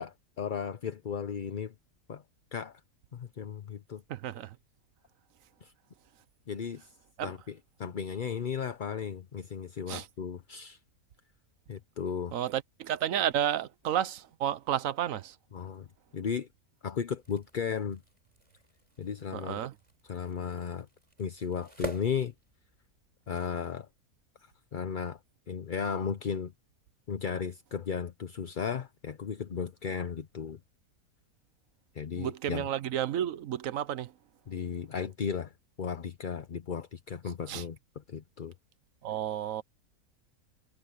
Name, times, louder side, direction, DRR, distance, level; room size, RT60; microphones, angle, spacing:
voice 1, 0.0-1.7 2.1-2.2 2.5-2.8 3.1-4.0 5.6-5.7 6.5-6.9 7.2-10.8 11.7-12.4 15.5-15.9 16.1-16.5 16.8-18.0 19.0-19.6 20.0-20.9 21.2-22.3 23.3-23.9 24.4-25.2 25.5-26.5 27.1-30.6 31.9-32.7 34.5-35.5 35.8-37.8 38.1-38.5, left 7 dB, 45° left, 0.7 m, -35 dB
voice 2, 4.1-4.5 7.2-7.3 9.9-10.1 12.3-15.3 19.3-19.7 32.2-34.1 37.5-37.6 39.0-39.6, right 10 dB, 65° right, 1.1 m, -31 dB
sound 1, 17.1-23.1, right 1 dB, 20° right, 6.4 m, -47 dB
omnidirectional pair, 1.6 m